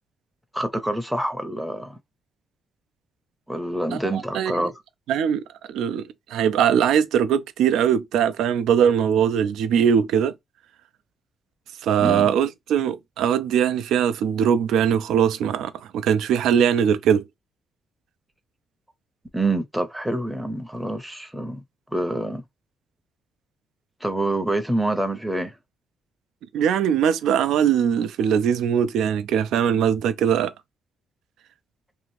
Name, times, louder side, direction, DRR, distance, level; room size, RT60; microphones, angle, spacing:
voice 1, 0.5-2.0 3.5-4.8 12.0-12.3 19.3-21.6 21.9-22.4 24.0-25.6, right 1 dB, 5° right, 0.6 m, -26 dB
voice 2, 3.9-4.5 5.1-5.4 5.7-6.0 6.3-10.3 11.8-17.3 26.5-30.5, right 8 dB, 80° right, 0.4 m, -21 dB
2.7 x 2.5 x 3.0 m
cardioid pair, 90°, 0 cm